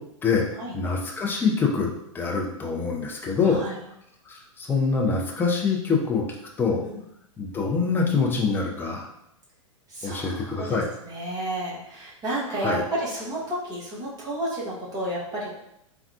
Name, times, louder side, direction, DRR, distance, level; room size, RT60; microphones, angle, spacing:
voice 1, 0.7-1.9 2.1-3.6 4.3-6.2 6.6-6.8 7.4-9.1 10.0-10.9 12.6-12.8, left 5 dB, 10° left, 0 dB, 0.4 m, -25 dB
voice 2, 3.4-3.7 6.8-7.0 9.9-15.5, right 1 dB, 25° right, -6 dB, 1.0 m, -31 dB
3.6 x 2.3 x 2.3 m, 0.79 s
figure-of-eight pair, 100°, 17 cm